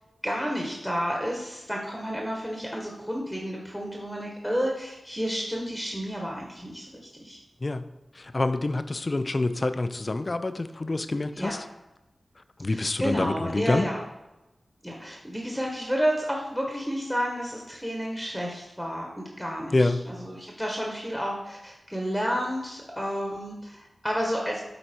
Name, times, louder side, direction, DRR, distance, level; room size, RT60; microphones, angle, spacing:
voice 1, 0.2-7.4 11.3-11.6 12.7-14.0 14.8-24.6, equal, ahead, -1 dB, 1.3 m, -31 dB
voice 2, 8.1-11.7 12.6-13.9 19.7-20.0, left 2 dB, 45° left, 11 dB, 0.5 m, -27 dB
8.0 x 4.1 x 4.4 m, 0.98 s
cardioid pair, 50°, 0 cm